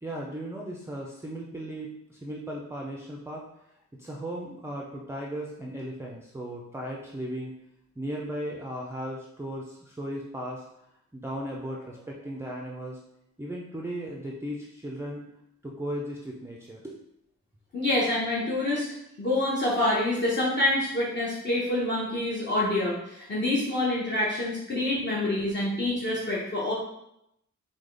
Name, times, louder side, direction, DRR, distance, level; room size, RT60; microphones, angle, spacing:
voice 1, 0.0-3.5 4.0-7.5 8.0-10.6 11.1-13.0 13.4-15.2 15.6-17.0, right 1 dB, 10° right, -2 dB, 0.4 m, -36 dB
voice 2, 17.7-18.9 19.2-26.7, left 1 dB, 35° left, -6 dB, 0.8 m, -26 dB
4.8 x 2.2 x 3.7 m, 0.81 s
wide cardioid pair, 145°, 30 cm